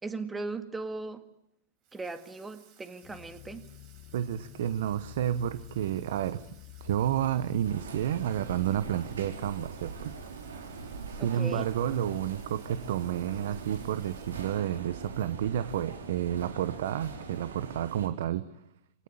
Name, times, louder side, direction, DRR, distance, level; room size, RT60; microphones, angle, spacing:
voice 1, 0.0-1.3 1.9-3.7 11.2-11.7, right 3 dB, 10° right, 7 dB, 2.1 m, -38 dB
Water tap faucet / Sink (filling or washing), 1.8-15.0, right 8 dB, 50° right, 6.0 m, -61 dB
sound 1, 3.0-10.2, left 17 dB, 45° left, 1.2 m, -51 dB
voice 2, 4.1-6.5 6.8-10.1 11.1-18.4, right 10 dB, 65° right, 13 dB, 1.0 m, -30 dB
sound 2, 7.6-18.1, right 4 dB, 80° right, 3.9 m, -42 dB
25.5 x 18.0 x 8.6 m, 0.84 s
hypercardioid pair, 105°, 0 cm